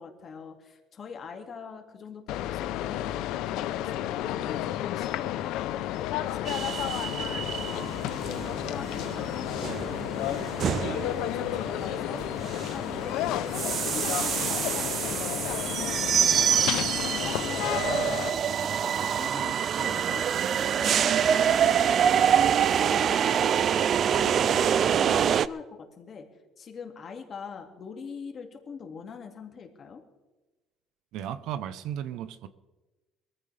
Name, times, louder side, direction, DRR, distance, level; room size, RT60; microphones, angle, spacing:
voice 1, 0.0-6.1 6.3-7.8 8.1-10.4 10.7-12.2 12.7-15.5 15.8-16.6 17.0-20.3 20.6-21.2 21.4-26.3 26.6-30.0, left 6 dB, 40° left, 2.2 m, -43 dB
sound 1, 2.3-18.3, left 13 dB, 80° left, 0.7 m, -32 dB
sound 2, 6.4-25.5, right 8 dB, 45° right, 0.4 m, -26 dB
voice 2, 31.1-32.5, right 10 dB, 75° right, 0.8 m, -35 dB
22.5 x 14.5 x 3.4 m
cardioid pair, 145°, 0 cm